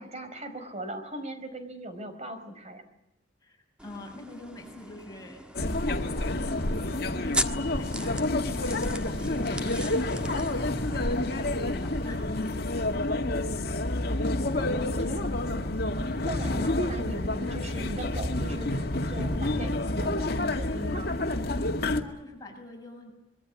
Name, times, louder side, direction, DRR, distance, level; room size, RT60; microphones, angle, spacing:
voice 1, 0.0-2.8 14.0-15.7 16.2-21.1, equal, 35° right, 9 dB, 4.7 m, -39 dB
voice 2, 3.4-12.8 21.6-23.1, left 1 dB, 20° left, 1 dB, 6.8 m, -46 dB
sound 1, 3.8-12.0, right 1 dB, 5° right, 1.4 m, -39 dB
sound 2, 5.5-22.0, left 2 dB, 55° left, 2.1 m, -29 dB
25.0 x 22.5 x 8.4 m, 0.88 s
head